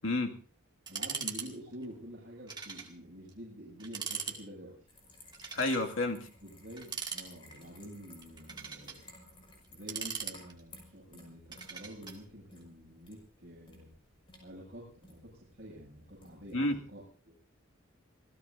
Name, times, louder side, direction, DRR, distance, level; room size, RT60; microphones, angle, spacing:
voice 1, 0.0-0.3 5.5-6.3 16.5-16.8, left 2 dB, 70° left, 2 dB, 2.4 m, -30 dB
sound 1, 0.9-1.5 1.7-1.8 2.5-2.9 3.3-3.4 3.8-4.4 5.3-5.9 6.8-7.6 8.2-9.0 9.6-10.8 11.5-12.2, right 6 dB, 20° right, 2.4 m, -40 dB
voice 2, 0.9-4.9 6.4-9.1 9.7-13.9 14.4-17.3, equal, 45° right, -5 dB, 7.6 m, -48 dB
sound 2, 4.9-16.7, left 2 dB, 25° left, 6.1 m, -58 dB
27.5 x 17.0 x 2.8 m, 0.38 s
head